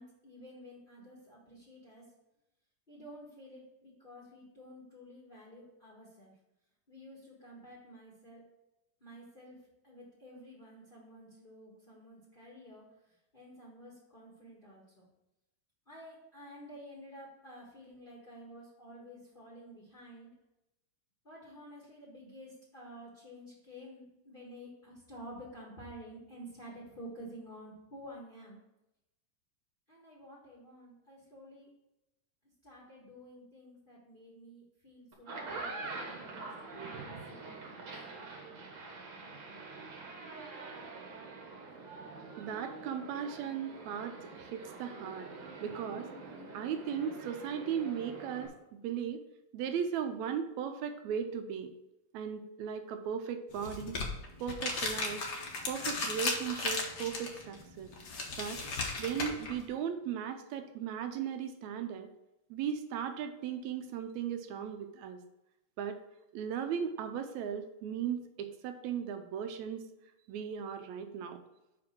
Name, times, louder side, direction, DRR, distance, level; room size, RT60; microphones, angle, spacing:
voice 1, 0.0-2.1 2.9-6.3 6.9-8.4 9.0-9.6 9.8-12.8 13.3-15.1 15.9-20.3 21.2-28.6 29.9-31.7 32.6-37.8, equal, 25° left, -4 dB, 1.1 m, -51 dB
sound 1, 35.1-48.5, right 3 dB, 55° right, 1.5 m, -45 dB
voice 2, 42.4-45.3 45.6-46.1 46.5-49.2 49.5-51.7 52.1-54.0 54.4-55.2 55.7-57.9 58.4-58.6 59.0-62.1 62.5-65.2 65.8-66.0 66.3-69.8 70.3-71.4, right 8 dB, 75° right, 7 dB, 1.8 m, -37 dB
sound 2, 53.5-59.6, left 3 dB, 75° left, 0.9 m, -36 dB
6.0 x 5.2 x 6.0 m, 0.92 s
omnidirectional pair, 3.6 m